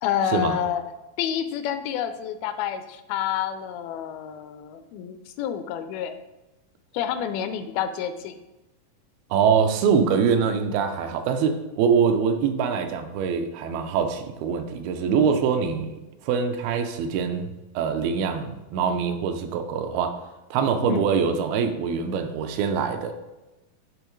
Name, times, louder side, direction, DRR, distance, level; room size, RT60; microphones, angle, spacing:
voice 1, 0.0-0.8 1.2-6.2 6.9-8.4 20.8-21.1, left 9 dB, 85° left, 10 dB, 2.3 m, -28 dB
voice 2, 9.3-20.2 20.5-23.1, right 6 dB, 85° right, 6 dB, 2.5 m, -24 dB
10.0 x 3.5 x 3.1 m, 1.0 s
omnidirectional pair, 4.2 m